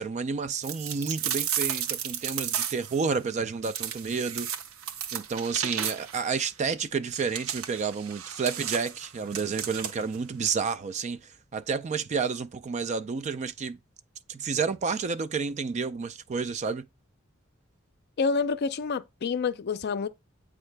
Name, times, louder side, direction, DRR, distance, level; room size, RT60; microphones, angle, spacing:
voice 1, 0.0-4.5 5.1-13.8 14.3-16.9, right 5 dB, 35° right, 0.3 m, -30 dB
sound 1, 0.6-3.0 3.6-6.3 7.1-10.2, right 9 dB, 85° right, 0.6 m, -33 dB
voice 2, 18.2-20.1, left 5 dB, 50° left, 0.4 m, -28 dB
8.0 x 4.7 x 3.3 m
head